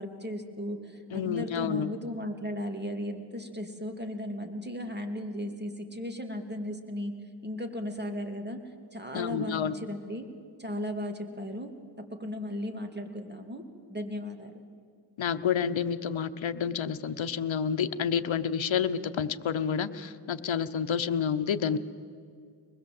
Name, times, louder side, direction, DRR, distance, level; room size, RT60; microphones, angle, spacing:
voice 1, 0.0-7.1 7.4-8.6 8.9-10.3 10.6-11.7 12.0-13.6 13.9-14.6, left 1 dB, 20° right, 5 dB, 2.6 m, -36 dB
voice 2, 1.1-1.9 9.1-9.7 15.2-21.8, left 7 dB, 70° left, 11 dB, 1.0 m, -29 dB
24.0 x 20.5 x 7.8 m, 2.2 s
cardioid pair, 60°, 47 cm